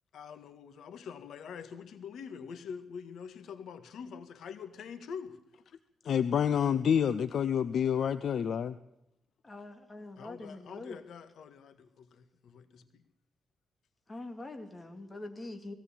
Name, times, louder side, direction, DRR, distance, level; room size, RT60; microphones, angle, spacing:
voice 1, 0.1-5.4 10.2-13.0, left 6 dB, 85° left, 9 dB, 1.8 m, -45 dB
voice 2, 6.0-8.8, left 8 dB, 65° left, 13 dB, 0.7 m, -28 dB
voice 3, 9.4-11.0 14.1-15.7, left 2 dB, 20° left, 5 dB, 2.5 m, -44 dB
18.5 x 17.0 x 8.6 m, 0.80 s
cardioid pair, 130°, 0 cm